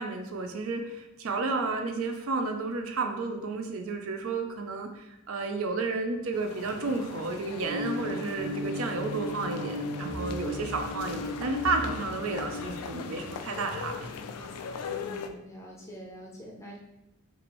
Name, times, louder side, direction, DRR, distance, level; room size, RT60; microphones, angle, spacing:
voice 1, 0.0-14.1, right 3 dB, 65° right, 4 dB, 0.4 m, -32 dB
sound 1, 6.3-15.3, left 6 dB, 85° left, 0.4 m, -40 dB
sound 2, 7.6-12.7, left 1 dB, 85° right, 1.2 m, -36 dB
sound 3, 10.0-14.9, right 1 dB, 35° right, 0.8 m, -44 dB
voice 2, 14.9-16.8, equal, 15° left, -1 dB, 0.5 m, -45 dB
4.6 x 2.5 x 3.0 m, 0.88 s
head